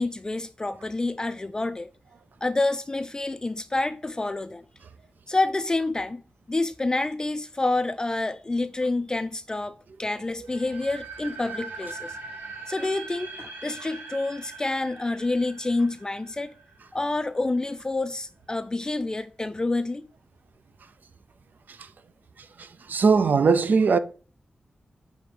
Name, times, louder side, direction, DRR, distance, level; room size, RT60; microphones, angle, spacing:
voice 1, 0.0-1.9 2.4-4.6 5.3-6.2 6.5-12.1 12.7-16.5 16.9-20.1, left 2 dB, 20° left, 0.3 m, -28 dB
sound 1, 10.5-17.3, right 3 dB, 85° right, 1.1 m, -41 dB
voice 2, 22.6-24.0, right 5 dB, 65° right, 0.4 m, -20 dB
6.4 x 3.4 x 5.1 m
wide cardioid pair, 105°, 3 cm